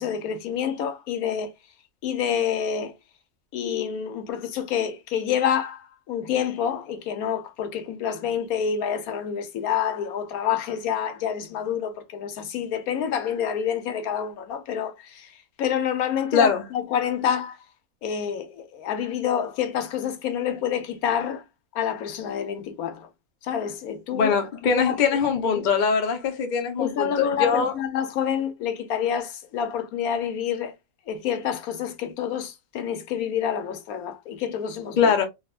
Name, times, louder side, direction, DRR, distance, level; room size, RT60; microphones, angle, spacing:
voice 1, 0.0-1.5 2.0-2.9 3.5-17.6 18.0-21.4 21.7-23.1 23.4-24.4 24.6-25.0 26.8-30.7 31.1-35.1, left 8 dB, 80° left, 1.1 m, -28 dB
voice 2, 16.3-16.6 24.1-27.7 35.0-35.3, left 6 dB, 45° left, 0.7 m, -22 dB
3.5 x 2.7 x 2.3 m
omnidirectional pair, 1.5 m